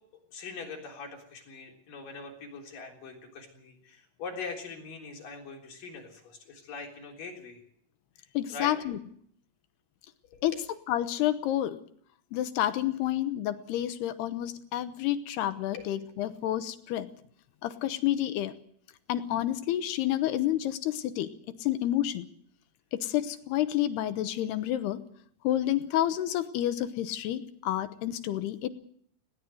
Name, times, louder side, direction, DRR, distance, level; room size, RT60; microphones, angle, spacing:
voice 1, 0.3-7.6 8.2-8.7 10.3-10.6 15.7-15.9, left 4 dB, 50° left, 2 dB, 5.1 m, -42 dB
voice 2, 8.3-9.0 10.4-10.5 10.9-11.8 12.3-17.1 17.6-18.5 19.1-21.3 21.6-22.3 22.9-25.0 25.4-28.7, left 12 dB, 75° left, 12 dB, 2.9 m, -29 dB
20.0 x 17.0 x 7.8 m, 0.63 s
omnidirectional pair, 5.0 m